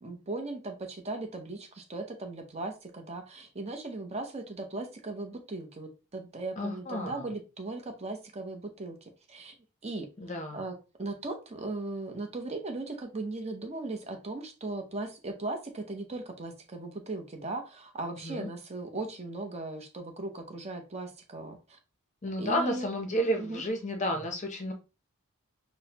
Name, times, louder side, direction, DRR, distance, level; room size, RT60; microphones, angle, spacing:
voice 1, 0.0-9.5 9.8-10.1 10.5-21.8 22.4-22.9 23.4-23.6, right 2 dB, 30° right, 4 dB, 0.7 m, -38 dB
voice 2, 6.6-7.3 10.2-10.6 18.2-18.5 22.2-24.7, equal, 35° left, 4 dB, 0.6 m, -31 dB
6.1 x 2.1 x 2.8 m, 0.30 s
head